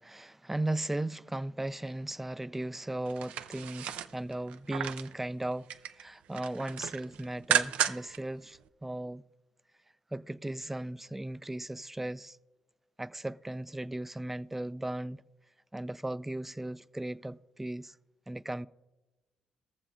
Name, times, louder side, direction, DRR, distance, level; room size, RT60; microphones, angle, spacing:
voice 1, 0.0-5.7 6.0-9.2 10.1-12.4 13.0-15.2 15.7-18.0 18.3-18.7, right 1 dB, 10° right, 0.3 m, -36 dB
sound 1, 3.1-5.1 5.5-6.0 6.3-8.2 8.5-8.6, right 9 dB, 75° right, 0.4 m, -33 dB
21.0 x 7.2 x 2.5 m
supercardioid pair, 55°, 2 cm